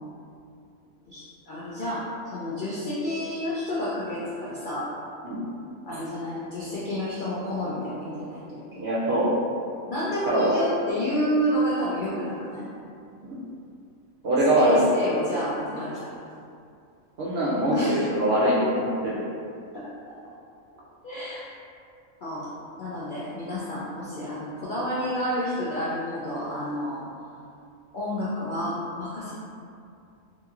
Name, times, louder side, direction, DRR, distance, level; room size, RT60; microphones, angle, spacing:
voice 1, 1.1-4.9 5.9-8.8 9.9-12.7 14.6-16.1 17.7-18.1 18.4-18.5 19.7-19.9 21.0-21.5 22.2-22.5 22.8-27.1 27.9-29.3, equal, 80° left, -8 dB, 0.4 m, -30 dB
voice 2, 8.7-9.3 10.3-10.5 13.2-13.4 14.2-14.8 17.2-19.1, right 1 dB, 65° right, -7 dB, 0.6 m, -23 dB
2.8 x 2.8 x 2.3 m, 2.5 s
omnidirectional pair, 1.4 m